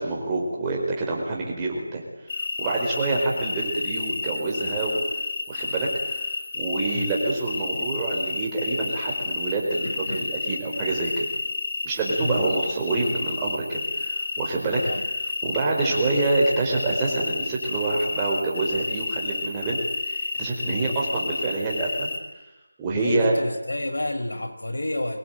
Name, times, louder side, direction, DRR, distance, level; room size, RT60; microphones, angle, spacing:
voice 1, 0.0-2.0 2.6-5.0 5.5-6.3 6.5-11.3 11.8-15.0 15.4-22.1 22.8-23.3, right 2 dB, 10° right, -3 dB, 4.6 m, -26 dB
sound 1, 2.3-22.2, left 3 dB, 30° left, 3.4 m, -31 dB
voice 2, 9.8-10.3 12.1-12.5 14.8-15.0 20.6-20.9 22.9-25.2, left 1 dB, 80° left, 4 dB, 5.5 m, -31 dB
24.0 x 20.5 x 9.2 m, 1.0 s
figure-of-eight pair, 175°, 0 cm